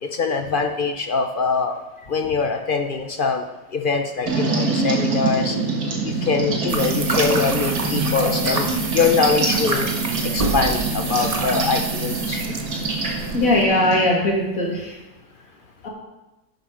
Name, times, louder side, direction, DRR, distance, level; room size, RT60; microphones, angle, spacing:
voice 1, 0.0-1.8 2.1-3.5 3.7-5.6 6.0-9.9 10.2-12.4, left 5 dB, 70° left, 5 dB, 0.5 m, -23 dB
sound 1, 4.3-14.1, right 3 dB, 65° right, 2.0 m, -25 dB
sound 2, 6.7-13.7, right 3 dB, 30° right, 0.8 m, -28 dB
voice 2, 13.3-15.0 15.8-15.9, left 1 dB, 50° left, -2 dB, 2.7 m, -20 dB
11.5 x 7.9 x 5.0 m, 1.0 s
omnidirectional pair, 1.8 m